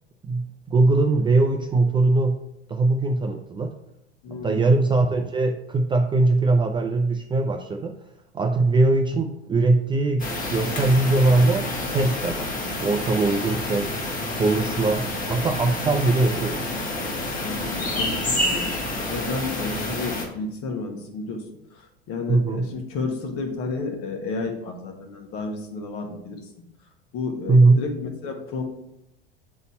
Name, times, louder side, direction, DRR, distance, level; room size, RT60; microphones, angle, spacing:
voice 1, 0.2-2.4 2.7-3.7 4.4-7.9 8.3-12.5 12.8-14.0 14.3-16.7 22.3-22.7 27.5-27.8, right 3 dB, 15° right, 4 dB, 0.5 m, -21 dB
voice 2, 4.2-4.6 17.4-18.7 19.1-21.4 21.7-26.4 27.1-27.9 28.2-28.6, left 3 dB, 45° left, 3 dB, 1.5 m, -31 dB
sound 1, 10.2-20.3, left 1 dB, 25° left, 1.5 m, -28 dB
7.0 x 4.0 x 4.3 m, 0.83 s
figure-of-eight pair, 75°, 33 cm